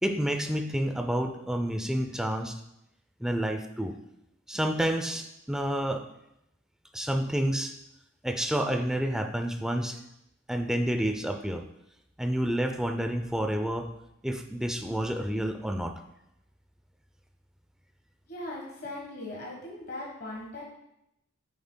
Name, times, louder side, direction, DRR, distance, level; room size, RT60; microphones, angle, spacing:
voice 1, 0.0-2.6 3.2-3.9 4.5-6.1 6.9-7.7 8.2-10.0 10.5-11.6 12.2-13.9 14.2-16.0, equal, 5° right, 6 dB, 0.4 m, -29 dB
voice 2, 18.3-20.6, left 1 dB, 45° left, -3 dB, 1.3 m, -39 dB
8.9 x 7.1 x 2.2 m, 0.84 s
head